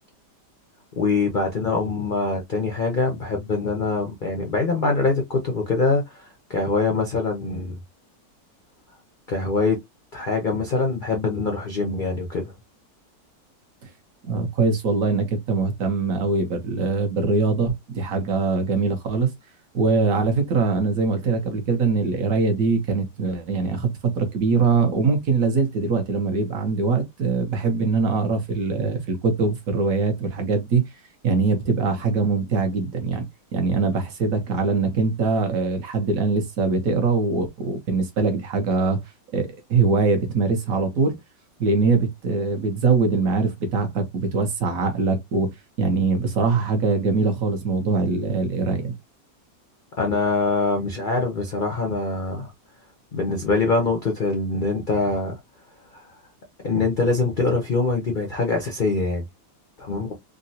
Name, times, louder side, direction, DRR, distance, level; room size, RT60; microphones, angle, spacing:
voice 1, 1.0-7.8 9.3-9.8 10.1-12.4 50.0-52.5 53.1-55.4 55.9-56.0 56.6-59.3 59.8-60.1, left 3 dB, 75° left, 0.4 m, -24 dB
voice 2, 14.2-19.3 19.7-30.8 31.2-33.2 33.5-39.0 39.3-41.2 41.6-48.9, right 4 dB, 60° right, 1.0 m, -22 dB
3.7 x 2.1 x 2.7 m
omnidirectional pair, 1.9 m